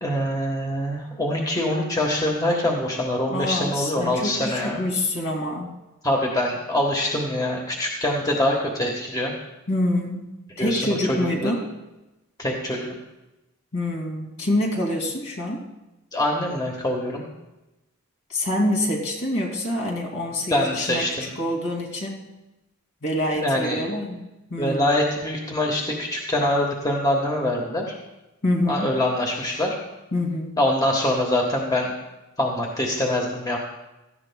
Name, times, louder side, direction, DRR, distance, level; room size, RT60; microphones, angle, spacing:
voice 1, 0.0-4.8 6.0-9.3 10.6-11.5 12.4-13.0 16.1-17.2 20.5-21.3 23.4-23.8 24.6-27.9 28.7-29.8 30.6-31.9 32.4-33.6, left 1 dB, 15° left, 0 dB, 1.4 m, -24 dB
voice 2, 3.3-5.8 9.7-11.6 13.7-15.6 18.3-21.1 21.4-22.2 23.0-24.8 28.4-28.9 30.1-30.6, left 1 dB, 60° left, 0 dB, 2.8 m, -26 dB
17.5 x 14.0 x 2.3 m, 1.0 s
head